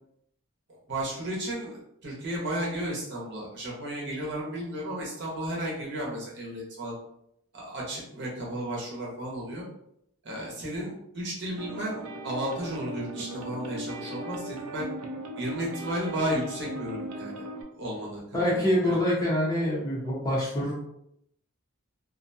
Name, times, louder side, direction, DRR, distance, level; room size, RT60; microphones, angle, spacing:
voice 1, 0.9-6.9 7.5-9.6 10.2-14.9 15.4-17.4 17.8-19.0, right 1 dB, 55° right, -3 dB, 0.8 m, -33 dB
sound 1, 11.6-17.6, right 1 dB, 85° right, 0.5 m, -38 dB
voice 2, 18.3-20.7, left 1 dB, 15° left, -6 dB, 0.6 m, -25 dB
2.5 x 2.1 x 2.6 m, 0.74 s
head